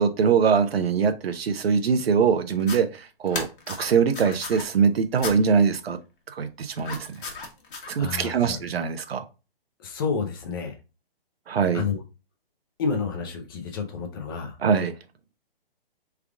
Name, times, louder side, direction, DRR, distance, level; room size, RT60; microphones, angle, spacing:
voice 1, 0.0-6.0 6.3-7.1 7.9-9.2 11.5-11.8 14.6-14.9, right 6 dB, 85° right, 0.7 m, -23 dB
sound 1, 2.6-2.8 3.3-4.6 5.2-5.4 6.8-7.9, left 4 dB, 60° left, 1.2 m, -35 dB
voice 2, 8.0-8.6 9.8-10.8 11.7-12.0 12.8-14.6, left 5 dB, 25° left, 0.5 m, -29 dB
3.4 x 2.4 x 3.5 m
hypercardioid pair, 145°, 29 cm